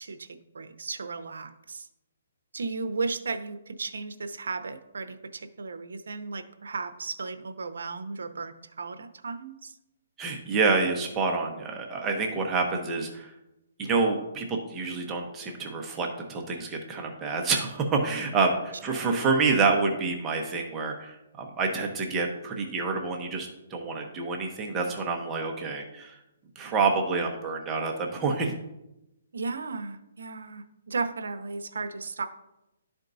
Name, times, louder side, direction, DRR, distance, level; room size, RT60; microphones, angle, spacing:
voice 1, 0.0-1.9 2.5-9.8 18.9-19.3 29.3-32.2, right 4 dB, 85° right, 9 dB, 0.7 m, -35 dB
voice 2, 10.2-13.3 13.8-26.1 26.6-28.5, right 4 dB, 15° right, 1 dB, 0.9 m, -28 dB
12.0 x 4.4 x 2.7 m, 0.91 s
hypercardioid pair, 155°, 0 cm